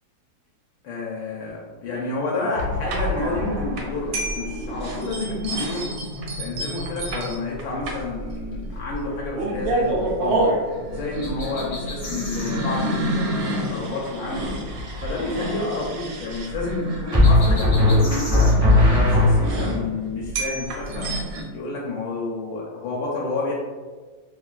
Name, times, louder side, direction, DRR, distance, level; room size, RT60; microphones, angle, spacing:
voice 1, 0.8-5.9 6.4-10.4 10.9-14.5 15.0-18.5 18.9-21.1 21.5-23.5, left 3 dB, 80° left, -4 dB, 1.3 m, -29 dB
sound 1, 2.6-21.4, right 1 dB, 80° right, 1.3 m, -29 dB
sound 2, 11.2-12.6 17.2-18.5, left 2 dB, 60° left, 0.6 m, -36 dB
sound 3, 14.5-14.9 17.1-19.8, left 2 dB, 5° right, 0.3 m, -17 dB
3.4 x 2.2 x 2.3 m, 1.4 s
omnidirectional pair, 2.1 m